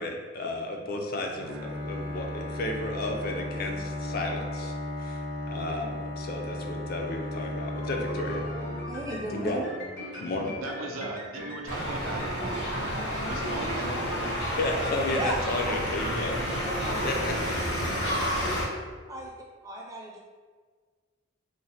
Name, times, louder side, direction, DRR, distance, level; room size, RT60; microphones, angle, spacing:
voice 1, 0.0-4.7 5.0-5.2 5.5-8.4 9.3-9.6 10.1-10.6 14.6-16.4 17.0-17.7, left 2 dB, 45° left, 0.4 m, -33 dB
Bowed string instrument, 1.3-9.6, left 1 dB, 55° right, 0.8 m, -35 dB
sound 1, 7.7-18.3, left 1 dB, 60° left, 0.8 m, -40 dB
voice 2, 8.9-9.6 15.1-15.4 15.7-15.8 19.1-19.3 19.6-20.2, right 1 dB, 15° right, 0.4 m, -34 dB
voice 3, 10.6-12.8 13.2-14.6 14.8-15.1 15.4-15.6, right 3 dB, 85° right, 0.4 m, -38 dB
sound 2, 11.6-18.6, equal, 80° left, 1.5 m, -30 dB
3.1 x 2.1 x 4.1 m
head